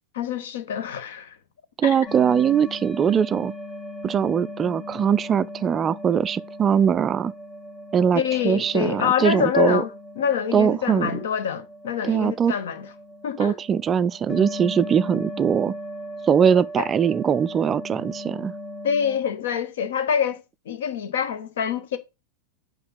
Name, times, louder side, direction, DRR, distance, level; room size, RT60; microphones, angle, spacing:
voice 1, 0.1-1.4 1.8-2.0 8.1-12.9 13.2-13.6 16.8-16.9 18.8-22.0, left 8 dB, 60° left, 1.1 m, -26 dB
voice 2, 1.8-3.5 4.0-7.3 7.9-9.8 10.5-11.1 12.0-12.5 13.4-15.7 16.3-18.5, right 7 dB, 25° right, 0.3 m, -21 dB
sound 1, 2.1-19.2, left 1 dB, 30° left, 2.5 m, -38 dB
5.7 x 5.2 x 5.7 m
figure-of-eight pair, 90°, 0 cm